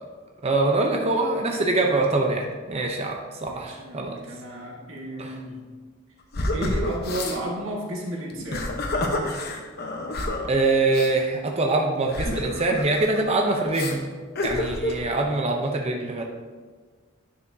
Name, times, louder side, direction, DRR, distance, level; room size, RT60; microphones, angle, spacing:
voice 1, 0.4-3.1 3.4-4.1 10.5-14.0 14.4-16.2, right 2 dB, 30° right, 1 dB, 0.7 m, -24 dB
voice 2, 3.4-5.7 6.5-8.8, right 1 dB, 90° right, -2 dB, 1.7 m, -33 dB
sound 1, 6.3-7.4 8.3-10.5 10.9-11.1 12.1-13.2 13.7-13.9 14.4-15.0, left 1 dB, 55° left, 0.9 m, -28 dB
10.0 x 7.0 x 2.7 m, 1.5 s
head